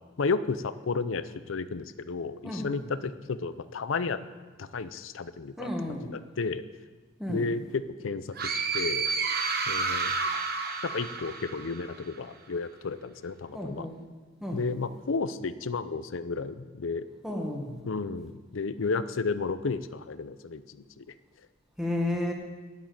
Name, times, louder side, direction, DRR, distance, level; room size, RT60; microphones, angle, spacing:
voice 1, 0.2-4.2 4.6-6.6 7.3-9.1 9.7-10.1 10.8-13.9 14.5-17.1 17.9-21.1, left 4 dB, 80° left, 13 dB, 0.6 m, -32 dB
voice 2, 2.4-2.8 5.6-6.1 7.2-7.5 13.5-14.0 14.4-14.6 17.2-17.8 21.8-22.3, left 1 dB, 5° right, 0 dB, 1.6 m, -32 dB
sound 1, 8.4-12.0, right 4 dB, 50° right, 1.1 m, -30 dB
11.0 x 7.4 x 9.3 m, 1.3 s
head